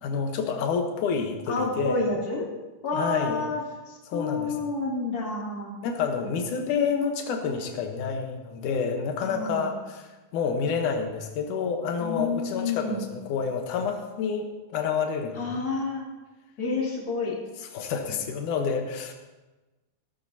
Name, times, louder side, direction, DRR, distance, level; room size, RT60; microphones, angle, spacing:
voice 1, 0.0-2.0 2.9-3.4 4.1-4.6 5.8-15.4 17.7-19.1, left 6 dB, 85° left, 4 dB, 2.7 m, -28 dB
voice 2, 1.5-2.5 2.8-3.6 3.9-5.7 6.2-6.3 9.2-9.7 12.0-13.1 15.3-16.0 16.6-17.4, left 3 dB, 30° left, -4 dB, 3.0 m, -29 dB
17.0 x 13.5 x 2.8 m, 1.2 s
omnidirectional pair, 3.5 m